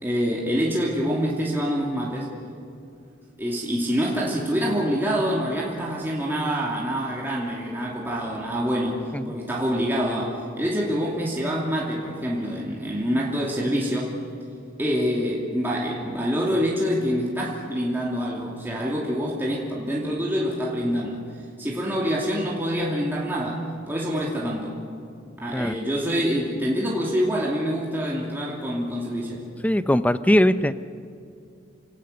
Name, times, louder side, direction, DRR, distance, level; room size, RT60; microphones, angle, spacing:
voice 1, 0.0-2.3 3.4-14.1 14.8-21.2 21.6-24.7 25.4-29.4, equal, 10° right, -4 dB, 2.8 m, -26 dB
voice 2, 29.6-30.8, equal, 10° left, 13 dB, 0.6 m, -20 dB
29.5 x 17.5 x 6.8 m, 2.5 s
head